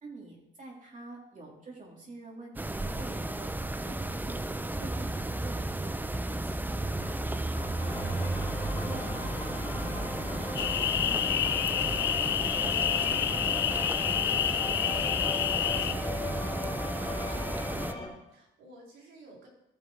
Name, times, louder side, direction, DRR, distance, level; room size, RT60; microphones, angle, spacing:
voice 1, 0.0-3.5 3.8-7.1 7.5-17.5, right 2 dB, 40° right, -2 dB, 3.1 m, -48 dB
sound 1, 2.6-17.9, right 2 dB, 10° right, 0.7 m, -34 dB
sound 2, 7.8-18.1, left 2 dB, 25° left, 4.6 m, -38 dB
sound 3, 10.6-15.9, left 11 dB, 65° left, 0.6 m, -28 dB
voice 2, 17.9-19.5, equal, 80° right, -3 dB, 4.3 m, -53 dB
15.0 x 6.6 x 4.7 m, 0.86 s
cardioid pair, 90°, 20 cm